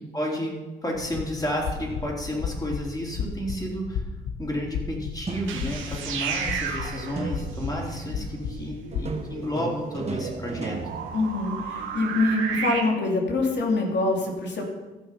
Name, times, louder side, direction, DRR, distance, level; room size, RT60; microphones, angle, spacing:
voice 1, 0.1-0.6 0.8-4.0 4.4-10.8, equal, 20° left, -2 dB, 3.7 m, -31 dB
sound 1, 0.9-9.1, left 6 dB, 80° left, 0.9 m, -35 dB
sound 2, 1.9-2.6 5.3-6.1 7.2-7.9 8.9-11.9, right 4 dB, 30° right, 1.2 m, -36 dB
sound 3, 5.3-12.8, right 6 dB, 80° right, 1.7 m, -34 dB
voice 2, 11.1-14.6, left 2 dB, 60° left, 0 dB, 2.8 m, -25 dB
15.0 x 6.6 x 5.8 m, 1.1 s
cardioid pair, 90°, 20 cm